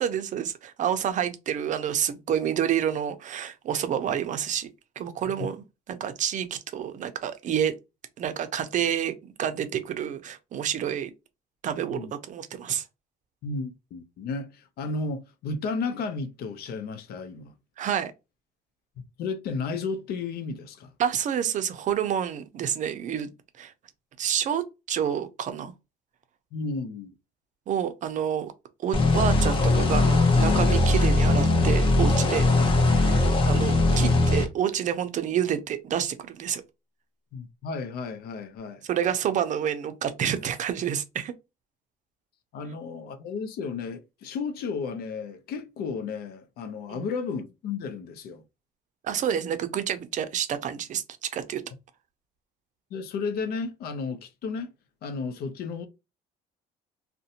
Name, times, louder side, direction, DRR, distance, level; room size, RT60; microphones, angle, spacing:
voice 1, 0.0-4.7 5.0-5.6 5.9-7.7 8.2-11.1 11.6-12.8 17.8-18.1 21.0-23.3 23.6-23.7 24.2-24.6 24.9-25.7 27.7-28.5 28.8-32.5 32.9-36.6 38.8-41.3 46.9-47.0 49.0-51.6, right 9 dB, 45° right, 0.5 m, -28 dB
voice 2, 13.4-17.5 19.2-20.9 26.5-27.1 37.3-38.8 42.5-48.4 52.9-54.7 55.0-55.9, left 4 dB, 70° left, 0.5 m, -33 dB
sound 1, 28.9-34.4, left 2 dB, 30° left, 0.7 m, -20 dB
2.5 x 2.1 x 2.8 m
cardioid pair, 110°, 17 cm